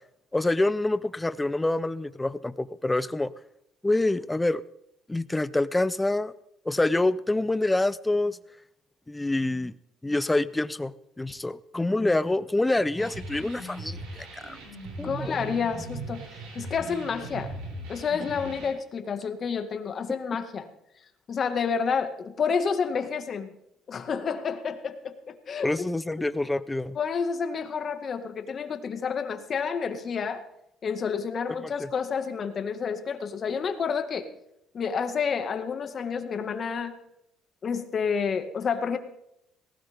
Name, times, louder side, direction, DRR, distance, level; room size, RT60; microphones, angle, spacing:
voice 1, 0.3-3.3 3.8-4.6 5.1-6.3 6.6-8.4 9.1-9.7 10.0-14.0 14.4-14.6 15.0-15.4 25.6-27.0 31.8-31.9, left 2 dB, 10° left, 16 dB, 0.7 m, -26 dB
sound 1, 13.0-18.7, right 2 dB, 85° right, 7.2 m, -39 dB
voice 2, 15.0-16.2 16.6-17.5 17.9-20.7 21.3-23.5 23.9-25.9 27.0-30.4 30.8-34.3 34.7-37.0 37.6-39.0, left 6 dB, 40° left, 7 dB, 1.9 m, -29 dB
19.0 x 17.0 x 3.6 m, 0.79 s
cardioid pair, 100°, 0 cm